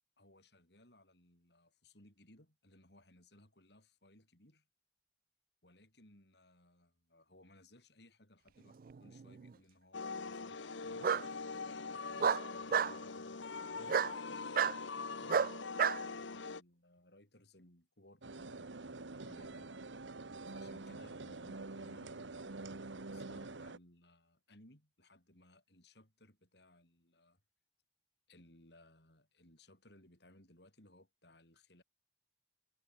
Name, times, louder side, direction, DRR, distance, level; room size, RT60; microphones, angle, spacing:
voice 1, 0.2-4.7 5.6-14.6 15.1-19.7 20.5-27.4 28.3-31.8, left 1 dB, 60° left, 7.3 m, -64 dB
Bark, 8.9-9.5 11.0-11.2 12.2-12.9 13.9-14.1 14.6-14.8 15.3-16.0, right 7 dB, 50° right, 0.4 m, -31 dB
sound 1, 9.9-16.6, left 4 dB, 80° left, 1.1 m, -43 dB
sound 2, 18.2-23.8, right 3 dB, 80° right, 1.2 m, -46 dB
head